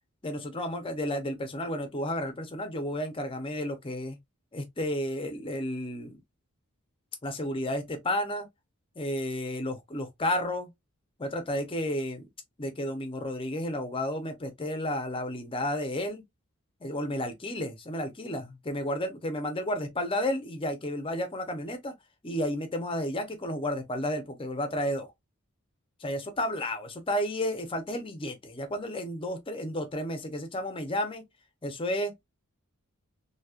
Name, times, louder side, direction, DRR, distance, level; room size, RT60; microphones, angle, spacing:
voice 1, 0.2-4.2 4.5-6.2 7.2-8.5 9.0-10.7 11.2-12.3 12.6-16.2 16.8-21.9 22.2-25.1 26.0-31.2 31.6-32.2, left 1 dB, 25° left, 0.7 m, -32 dB
2.9 x 2.8 x 2.4 m
head